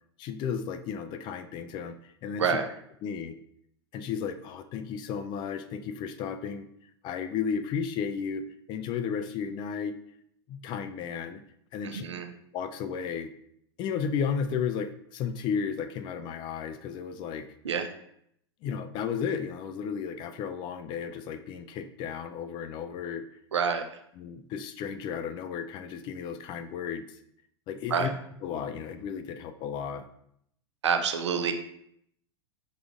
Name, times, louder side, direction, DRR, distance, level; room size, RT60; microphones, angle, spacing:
voice 1, 0.2-2.6 3.0-3.4 3.9-6.7 7.0-8.4 8.7-10.0 10.5-11.4 11.7-12.0 12.5-13.3 13.8-17.5 18.6-23.2 24.2-27.2 27.7-28.1 28.4-30.0, left 7 dB, 35° left, 9 dB, 0.3 m, -33 dB
voice 2, 11.8-12.3 17.6-17.9 23.5-23.8 27.9-28.1 30.8-31.5, right 6 dB, 80° right, 7 dB, 0.6 m, -27 dB
5.0 x 3.7 x 2.4 m, 0.71 s
hypercardioid pair, 100°, 15 cm